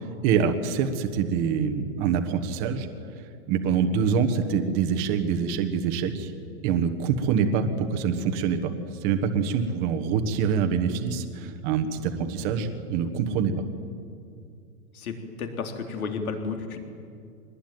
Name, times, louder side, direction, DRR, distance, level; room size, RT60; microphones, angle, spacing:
voice 1, 0.2-2.9 3.5-6.3 6.6-8.7 9.0-13.5, right 6 dB, 20° right, 7 dB, 1.2 m, -25 dB
voice 2, 14.9-16.8, left 5 dB, 65° left, 4 dB, 3.8 m, -32 dB
23.5 x 20.0 x 9.1 m, 2.4 s
hypercardioid pair, 170°, 45 cm